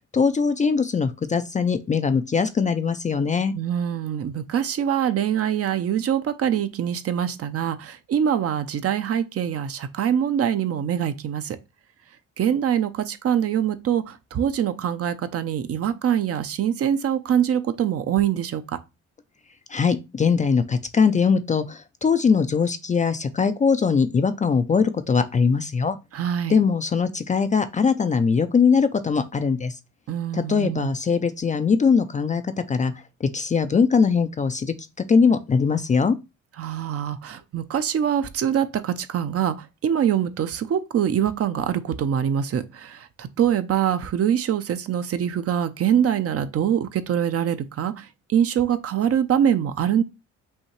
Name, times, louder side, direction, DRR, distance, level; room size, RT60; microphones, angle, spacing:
voice 1, 0.1-3.5 19.7-26.0 26.5-29.8 30.3-32.9 33.2-34.7 35.1-36.2, left 5 dB, 25° left, 0.4 m, -21 dB
voice 2, 3.5-11.6 12.4-18.6 26.1-26.6 30.1-30.9 36.6-39.5 39.8-50.0, right 9 dB, 50° right, 0.6 m, -24 dB
5.5 x 2.8 x 3.0 m
cardioid pair, 90°, 30 cm